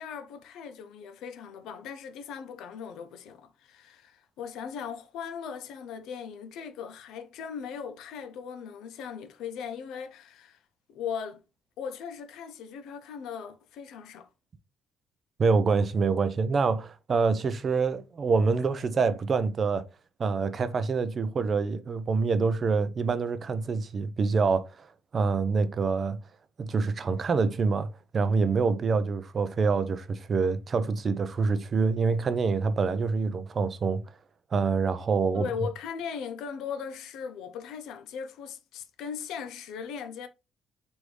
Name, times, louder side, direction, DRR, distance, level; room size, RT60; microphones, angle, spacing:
voice 1, 0.0-10.6 10.9-11.4 11.8-14.3 35.3-40.3, left 7 dB, 85° left, 0.6 m, -38 dB
voice 2, 15.4-19.8 20.2-24.9 25.1-26.2 26.6-34.1 34.5-35.5, right 4 dB, 35° right, 0.4 m, -26 dB
4.7 x 2.6 x 3.2 m
cardioid pair, 150°, 0 cm